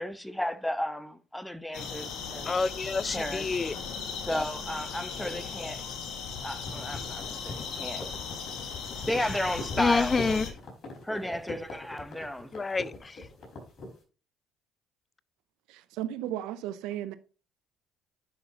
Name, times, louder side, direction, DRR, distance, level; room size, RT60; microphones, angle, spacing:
voice 1, 0.0-2.5 3.1-3.4 4.2-5.9 6.4-8.1 9.0-10.4 11.0-12.8, left 1 dB, 5° left, 1.0 m, -33 dB
sound 1, 1.7-10.5, left 6 dB, 65° left, 1.7 m, -38 dB
voice 2, 2.5-3.8 9.8-10.5 12.5-13.3, left 4 dB, 30° left, 0.3 m, -28 dB
sound 2, 6.5-14.0, left 3 dB, 50° left, 4.7 m, -41 dB
voice 3, 15.7-17.2, right 12 dB, 75° right, 0.6 m, -35 dB
10.5 x 5.7 x 2.8 m
hypercardioid pair, 65°, 0 cm